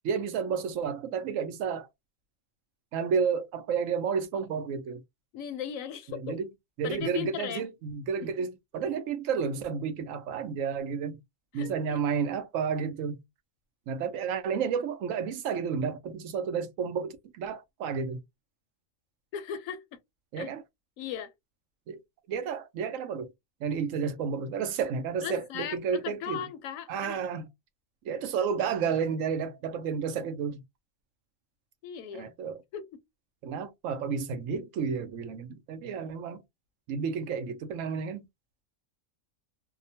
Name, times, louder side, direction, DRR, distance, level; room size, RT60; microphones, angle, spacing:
voice 1, 0.0-1.9 2.9-5.0 6.1-6.5 6.8-11.2 11.5-13.2 13.9-18.2 20.3-20.6 21.9-22.0 22.3-23.3 23.6-26.4 26.9-27.5 28.0-30.6 32.1-32.6 33.4-36.4 36.9-38.3, right 6 dB, 75° right, 0.9 m, -31 dB
voice 2, 5.3-6.4 6.8-7.7 11.5-12.0 19.3-19.8 20.4-20.5 21.0-21.3 25.2-27.4 31.8-32.3 32.7-33.0, left 9 dB, 80° left, 1.0 m, -37 dB
2.8 x 2.1 x 2.7 m
omnidirectional pair, 1.4 m